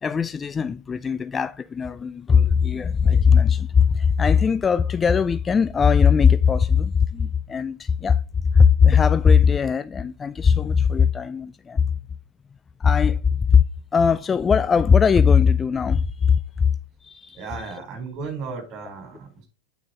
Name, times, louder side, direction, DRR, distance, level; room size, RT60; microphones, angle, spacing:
voice 1, 0.0-8.2 8.5-11.8 12.8-13.6 13.9-16.7 17.0-17.4, left 6 dB, 20° left, 0.3 m, -19 dB
voice 2, 17.3-19.4, right 4 dB, 35° right, 4.5 m, -35 dB
8.7 x 6.9 x 3.9 m
figure-of-eight pair, 90°, 0 cm